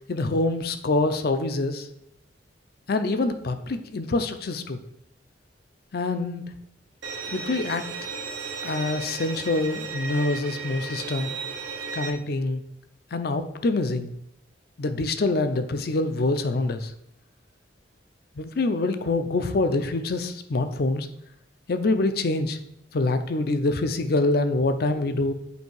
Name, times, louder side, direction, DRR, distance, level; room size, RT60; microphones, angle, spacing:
voice 1, 0.1-1.9 2.9-4.8 5.9-6.4 7.3-7.9 8.6-11.3 11.9-12.6 13.1-14.1 14.8-16.9 18.4-21.1 21.7-22.6 22.9-25.3, left 2 dB, 55° left, 9 dB, 0.5 m, -25 dB
Bowed string instrument, 7.0-12.1, right 4 dB, 85° right, 0.8 m, -34 dB
8.0 x 2.7 x 4.6 m, 0.77 s
head